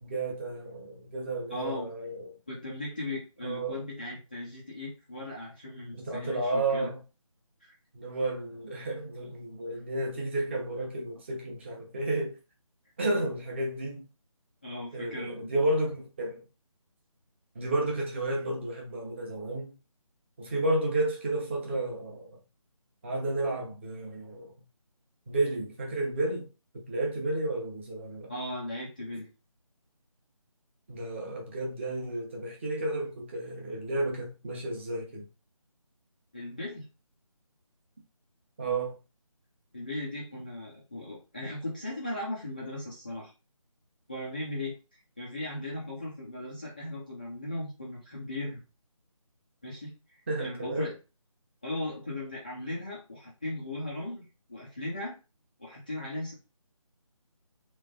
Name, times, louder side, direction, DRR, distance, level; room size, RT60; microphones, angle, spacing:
voice 1, 0.0-2.4 3.4-3.8 5.9-7.0 7.9-12.4 13.0-14.1 14.9-16.4 17.5-19.7 20.4-22.3 23.0-24.5 25.3-26.4 26.9-28.3 30.9-35.3 38.6-39.0 50.3-50.9, right 2 dB, 20° right, 0.9 m, -32 dB
voice 2, 1.5-1.9 2.5-6.9 7.6-7.7 14.6-15.6 28.3-29.3 36.3-36.9 39.7-43.3 44.1-44.8 45.2-48.6 49.6-50.9 51.6-55.2 55.6-56.3, left 1 dB, 15° left, 0.4 m, -37 dB
3.3 x 3.3 x 3.6 m
figure-of-eight pair, 160°, 18 cm